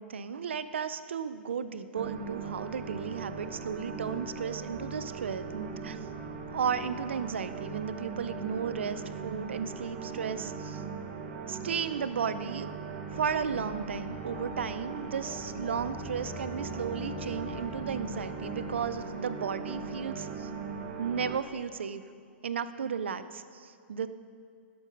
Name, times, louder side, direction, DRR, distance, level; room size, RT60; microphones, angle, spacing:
voice 1, 0.0-6.1 6.5-10.8 11.5-12.7 13.1-20.5 21.0-22.0 22.4-24.1, right 7 dB, 80° right, 13 dB, 0.5 m, -34 dB
sound 1, 1.9-21.4, right 5 dB, 60° right, 1.2 m, -39 dB
sound 2, 13.1-19.0, left 6 dB, 30° left, 0.7 m, -46 dB
11.5 x 6.8 x 5.3 m, 2.3 s
hypercardioid pair, 120°, 6 cm